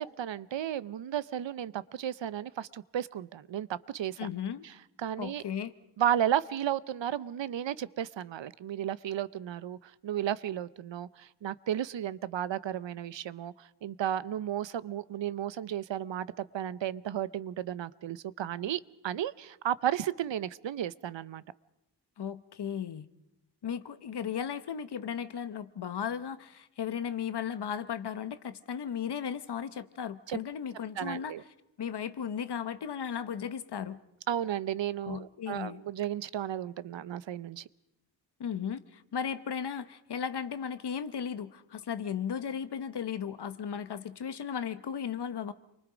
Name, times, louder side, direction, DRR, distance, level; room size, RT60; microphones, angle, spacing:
voice 1, 0.0-4.3 4.6-4.7 5.0-5.4 6.0-21.4 30.3-30.4 31.0-31.4 34.3-37.7, right 10 dB, 90° right, 18 dB, 0.8 m, -33 dB
voice 2, 4.2-4.6 5.2-5.7 22.2-23.1 23.6-31.3 31.8-34.0 35.0-35.8 38.4-45.5, left 8 dB, 65° left, 13 dB, 1.1 m, -36 dB
29.5 x 23.5 x 5.1 m, 0.85 s
wide cardioid pair, 160°, 43 cm